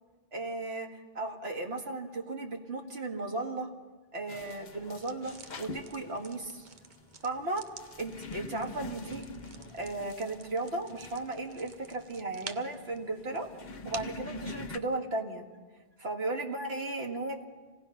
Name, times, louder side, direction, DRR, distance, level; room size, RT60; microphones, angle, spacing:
voice 1, 0.3-0.9 1.1-3.7 4.1-6.7 7.2-7.7 8.0-9.3 9.7-13.5 13.9-15.4 16.0-17.4, right 2 dB, 80° right, 2 dB, 2.2 m, -35 dB
sound 1, 4.3-14.8, left 2 dB, 50° left, 1.0 m, -45 dB
sound 2, 4.9-14.3, right 5 dB, 50° right, 1.0 m, -50 dB
27.0 x 17.5 x 5.8 m, 1.3 s
omnidirectional pair, 1.1 m